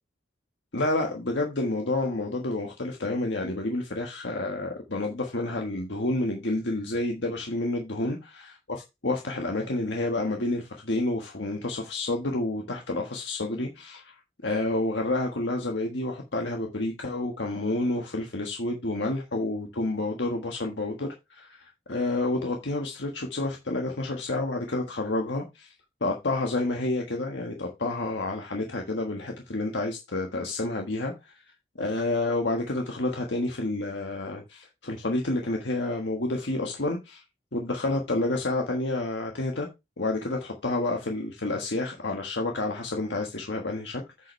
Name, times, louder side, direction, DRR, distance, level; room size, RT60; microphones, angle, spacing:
voice 1, 0.7-8.2 9.0-25.7 26.0-31.4 31.8-37.2 37.5-39.7 40.0-44.3, left 2 dB, 75° left, 1.5 m, -29 dB
9.2 x 6.9 x 3.2 m
head